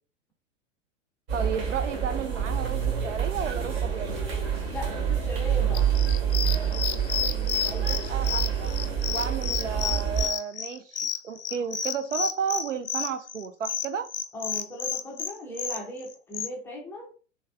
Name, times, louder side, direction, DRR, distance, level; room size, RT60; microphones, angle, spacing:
sound 1, 1.3-10.3, right 8 dB, 55° right, 1.3 m, -27 dB
voice 1, 1.3-4.1 7.6-8.7 9.1-11.0 11.2-14.1, right 7 dB, 75° right, 9 dB, 0.6 m, -32 dB
voice 2, 4.7-6.1 14.3-17.1, equal, 5° left, -3 dB, 0.4 m, -38 dB
sound 2, 5.7-16.5, left 8 dB, 65° left, 0.5 m, -31 dB
3.3 x 3.2 x 2.3 m, 0.38 s
figure-of-eight pair, 100°, 38 cm